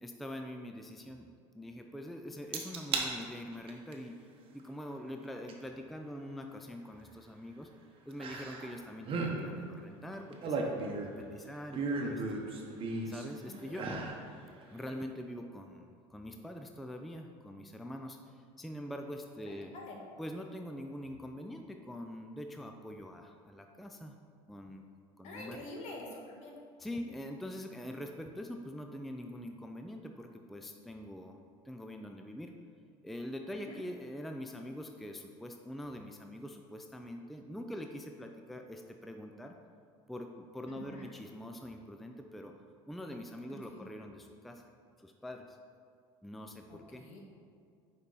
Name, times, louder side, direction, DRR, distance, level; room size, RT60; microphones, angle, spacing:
voice 1, 0.0-4.3 4.5-7.7 8.1-12.2 13.1-13.9 14.7-19.7 20.2-24.2 24.5-24.8 25.2-25.6 26.8-31.4 31.6-32.5 33.0-39.6 40.1-42.5 42.9-44.7 45.0-45.6 46.2-47.1, equal, ahead, 4 dB, 0.3 m, -44 dB
sound 1, 2.5-3.1 3.5-3.9 5.5-5.6 8.2-8.7 9.0-9.4 10.1-11.2 11.7-13.3 13.7-14.2 14.6-14.7, right 3 dB, 40° right, 0.8 m, -35 dB
voice 2, 25.2-26.6 33.6-33.7 40.7-41.1 43.7-43.9 46.7-47.2, left 2 dB, 60° left, -1 dB, 1.2 m, -46 dB
5.9 x 4.2 x 3.9 m, 2.3 s
supercardioid pair, 95°, 13 cm